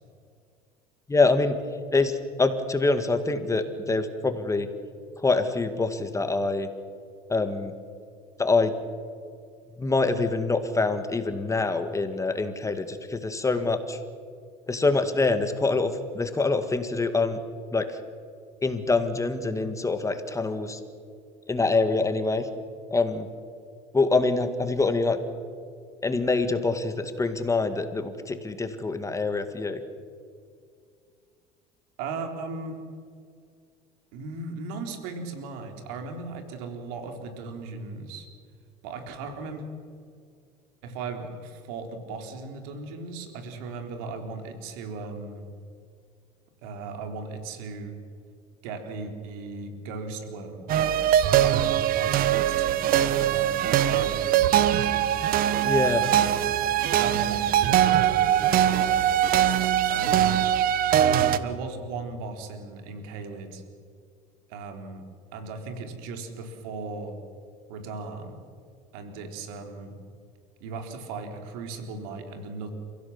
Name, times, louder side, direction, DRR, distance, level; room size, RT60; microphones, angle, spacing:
voice 1, 1.1-1.6 1.9-4.7 5.2-6.7 7.3-7.7 8.4-8.7 9.8-14.0 14.7-17.4 17.7-18.0 18.6-20.8 21.5-22.5 22.9-23.3 23.9-25.2 26.0-29.8 55.6-56.0, left 3 dB, 15° left, 9 dB, 2.0 m, -25 dB
voice 2, 32.0-32.8 34.1-38.3 38.8-39.6 40.8-45.5 46.6-48.0 48.6-55.2 55.8-56.3 57.0-59.2 59.9-60.4 60.6-63.6 64.5-65.0 65.3-67.2 67.7-68.4 68.9-70.0 70.6-72.7, right 3 dB, 80° right, 5 dB, 3.7 m, -37 dB
sound 1, 50.7-61.4, right 11 dB, 55° right, 1.2 m, -22 dB
30.0 x 16.0 x 7.2 m, 2.2 s
supercardioid pair, 100°, 18 cm